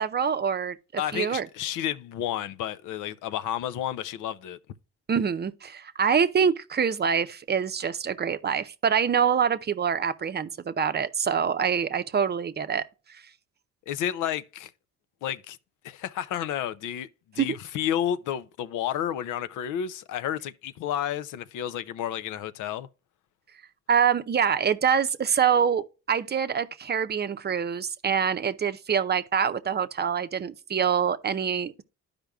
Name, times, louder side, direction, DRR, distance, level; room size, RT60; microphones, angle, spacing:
voice 1, 0.0-1.5 5.1-12.8 13.1-13.2 17.4-17.5 23.9-31.8, right 7 dB, 35° right, 0.6 m, -25 dB
voice 2, 1.0-4.6 13.9-14.7 15.2-15.6 15.8-17.1 17.3-22.9, left 10 dB, 85° left, 0.6 m, -31 dB
13.0 x 5.1 x 2.3 m
cardioid pair, 90°, 30 cm